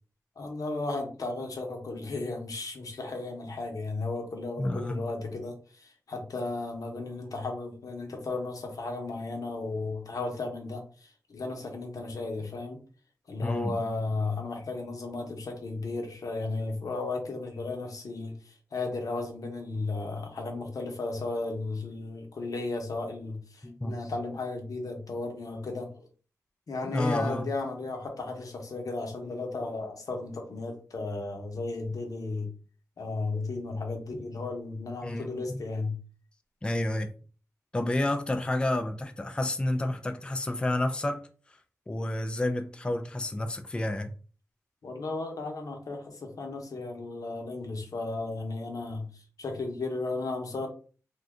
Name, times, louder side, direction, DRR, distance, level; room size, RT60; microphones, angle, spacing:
voice 1, 0.4-12.8 13.3-26.1 26.7-32.5 33.0-36.0 44.8-50.7, left 3 dB, 75° left, 0.8 m, -34 dB
voice 2, 4.6-5.0 13.4-13.9 23.6-23.9 26.8-27.5 35.0-35.6 36.6-37.1 37.7-41.2 41.5-41.6 41.9-44.1, left 1 dB, 15° left, 0.3 m, -30 dB
2.7 x 2.3 x 3.5 m
wide cardioid pair, 85°, 6 cm